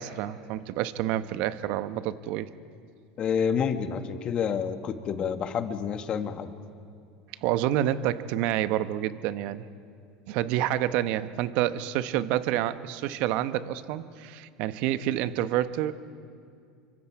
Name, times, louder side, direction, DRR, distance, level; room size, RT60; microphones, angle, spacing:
voice 1, 0.0-2.5 7.4-9.6 10.3-15.9, right 12 dB, 60° right, 12 dB, 1.0 m, -28 dB
voice 2, 3.2-6.5, left 7 dB, 40° left, 8 dB, 1.7 m, -28 dB
29.5 x 24.5 x 4.7 m, 2.3 s
hypercardioid pair, 90°, 2 cm